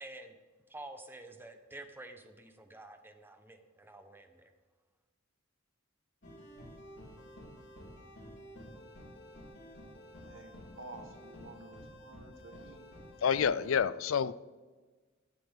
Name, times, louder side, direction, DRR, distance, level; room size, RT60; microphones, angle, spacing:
voice 1, 0.0-0.3 0.7-4.5, right 2 dB, 10° right, 7 dB, 1.0 m, -49 dB
sound 1, 6.2-13.8, equal, 65° left, 3.7 m, -51 dB
voice 2, 10.2-12.8 13.3-13.6, right 2 dB, 85° right, 6 dB, 1.4 m, -51 dB
voice 3, 13.2-14.3, left 7 dB, 85° left, 18 dB, 0.4 m, -28 dB
17.0 x 9.1 x 3.6 m, 1.4 s
head